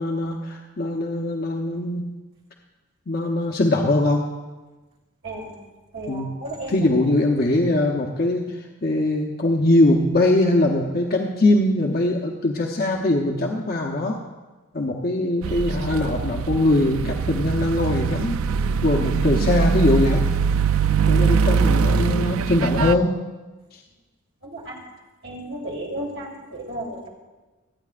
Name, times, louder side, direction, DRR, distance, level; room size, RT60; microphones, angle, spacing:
voice 1, 0.0-2.2 3.1-4.3 6.1-6.3 6.7-14.2 14.7-18.4 18.8-20.3 21.1-23.2 23.7-23.8, left 1 dB, 45° left, 0 dB, 0.9 m, -21 dB
voice 2, 5.9-6.9 24.4-24.8 25.2-27.1, right 1 dB, 65° right, -3 dB, 3.0 m, -33 dB
sound 1, 15.4-23.0, right 5 dB, 80° right, 0.3 m, -22 dB
26.0 x 9.4 x 2.5 m, 1.2 s
head